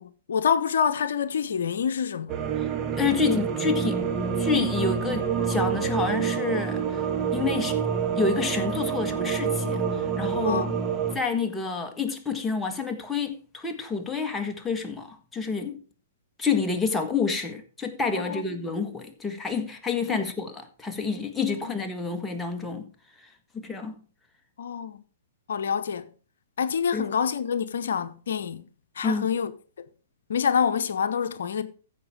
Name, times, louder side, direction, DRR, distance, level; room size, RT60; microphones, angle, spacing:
voice 1, 0.0-2.4 10.4-10.8 18.2-18.4 20.1-20.3 21.6-21.7 24.6-25.0 25.5-26.1 26.6-28.6 29.0-29.5 30.3-31.6, left 7 dB, 70° left, 0.8 m, -27 dB
sound 1, 2.3-11.2, right 7 dB, 25° right, 1.3 m, -27 dB
voice 2, 2.9-4.0 4.4-7.8 8.2-10.7 11.1-15.8 16.4-22.9 23.5-24.0 26.9-27.1 29.0-29.3, left 5 dB, 10° left, 1.7 m, -28 dB
14.5 x 5.9 x 4.8 m
hypercardioid pair, 115°, 0 cm